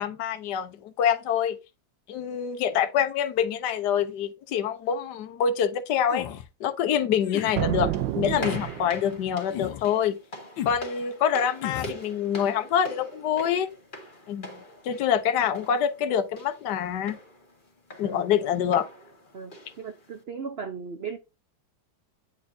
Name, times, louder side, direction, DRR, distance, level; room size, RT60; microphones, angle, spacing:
voice 1, 0.0-1.6 2.1-6.3 6.6-10.2 10.6-13.7 14.3-14.6 14.8-17.2 18.0-18.9, left 8 dB, 65° left, 1.4 m, -26 dB
sound 1, 6.1-6.5 7.2-7.6 8.3-8.7 9.5-9.9 10.6-10.8 11.6-12.0, left 11 dB, 90° left, 1.5 m, -34 dB
sound 2, 7.2-20.2, equal, 25° left, 1.9 m, -43 dB
sound 3, 7.5-9.3, right 13 dB, 75° right, 1.3 m, -29 dB
voice 2, 19.3-21.2, right 5 dB, 60° right, 0.6 m, -37 dB
9.9 x 4.3 x 2.7 m
omnidirectional pair, 2.0 m